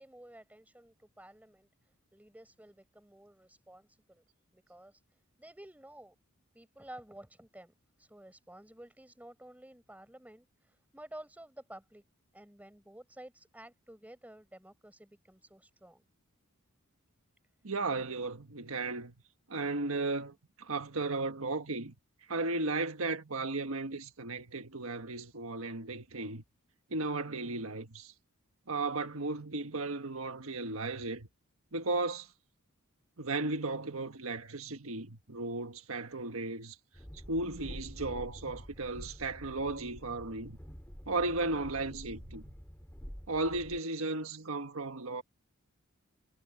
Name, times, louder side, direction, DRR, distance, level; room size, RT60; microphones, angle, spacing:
voice 1, 0.0-1.7 2.1-4.2 4.5-5.0 5.4-6.1 6.5-12.0 12.3-16.0, right 1 dB, 5° right, 5.1 m, -52 dB
voice 2, 17.6-19.1 19.5-22.0 22.3-26.4 26.9-28.1 28.7-31.3 31.7-32.3 33.2-36.8 37.3-40.6 41.1-42.4 43.3-45.2, right 3 dB, 70° right, 1.5 m, -35 dB
Train, 36.9-43.8, equal, 10° left, 2.8 m, -48 dB
head